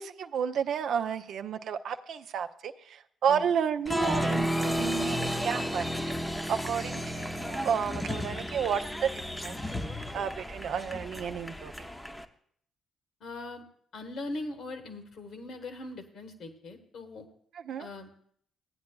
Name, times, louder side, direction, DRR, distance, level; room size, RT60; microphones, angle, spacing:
voice 1, 0.0-9.1 9.4-9.6 10.1-11.9 17.5-17.9, right 7 dB, 65° right, 8 dB, 0.5 m, -32 dB
Applause, 3.9-12.2, equal, 10° left, 0.8 m, -32 dB
voice 2, 13.2-13.6 13.9-17.2 17.8-18.1, left 2 dB, 60° left, 6 dB, 1.3 m, -40 dB
16.0 x 9.3 x 2.3 m, 0.63 s
hypercardioid pair, 45°, 0 cm